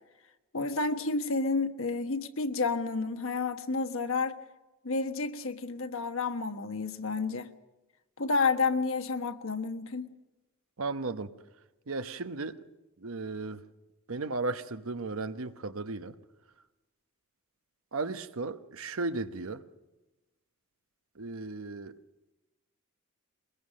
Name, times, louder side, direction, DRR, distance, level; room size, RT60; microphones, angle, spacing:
voice 1, 0.5-4.3 4.8-7.5 8.2-10.1, left 4 dB, 65° left, 1.3 m, -30 dB
voice 2, 10.8-11.3 11.9-12.6 13.0-13.6 14.1-16.1 17.9-19.6 21.2-21.9, right 3 dB, 70° right, 1.0 m, -35 dB
22.5 x 21.5 x 6.4 m
head